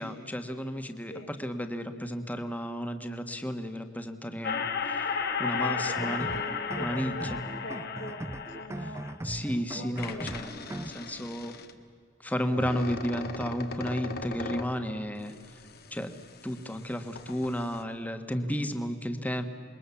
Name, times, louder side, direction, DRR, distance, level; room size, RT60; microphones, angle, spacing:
voice 1, 0.0-6.3 6.8-7.4 9.2-11.5 12.2-15.3 15.9-16.1 16.4-19.4, equal, 10° left, 7 dB, 1.5 m, -33 dB
sound 1, 4.4-9.4 10.0-11.7 12.4-14.8 15.3-16.8 17.1-17.8, left 5 dB, 55° left, 1.6 m, -35 dB
voice 2, 5.5-9.0 9.7-10.4 18.3-18.8, left 1 dB, 75° left, -2 dB, 3.3 m, -42 dB
sound 2, 5.9-10.9, right 1 dB, 15° right, 0.5 m, -39 dB
27.0 x 22.0 x 7.2 m, 2.3 s
head